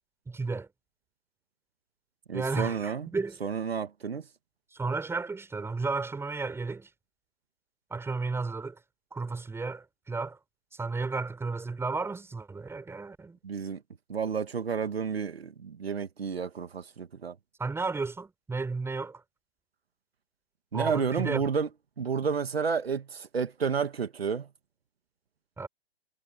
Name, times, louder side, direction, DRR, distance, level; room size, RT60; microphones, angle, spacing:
voice 1, 0.3-0.7 2.3-3.4 4.7-6.9 7.9-8.8 9.1-10.4 10.7-13.4 17.6-19.2 20.7-21.4 25.6-25.7, right 4 dB, 10° right, 5.3 m, -33 dB
voice 2, 2.3-3.1 3.4-4.3 13.4-13.8 14.1-17.4 20.7-21.7 22.0-24.5, right 6 dB, 80° right, 1.9 m, -31 dB
hypercardioid pair, 120°, 30 cm